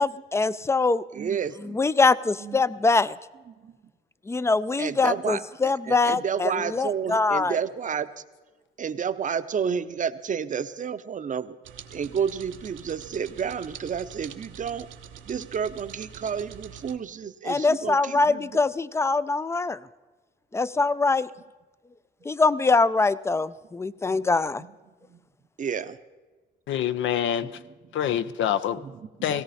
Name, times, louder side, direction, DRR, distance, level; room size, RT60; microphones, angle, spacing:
voice 1, 0.0-1.0 1.7-3.2 4.3-7.6 17.5-19.8 20.5-21.3 22.2-24.6, left 3 dB, 15° left, 17 dB, 0.4 m, -23 dB
voice 2, 1.1-1.8 2.4-2.6 3.5-3.8 4.8-8.1 8.8-11.6 11.9-14.9 15.2-18.6 24.1-24.7 25.1-25.2 25.6-26.0 28.2-28.3 28.8-29.4, right 7 dB, 40° right, 12 dB, 0.7 m, -31 dB
sound 1, 11.6-17.0, right 8 dB, 80° right, 0.9 m, -45 dB
voice 3, 26.7-27.5 27.9-28.8 29.2-29.4, left 10 dB, 75° left, 13 dB, 0.6 m, -26 dB
17.5 x 17.0 x 4.2 m, 1.3 s
cardioid pair, 90°, 20 cm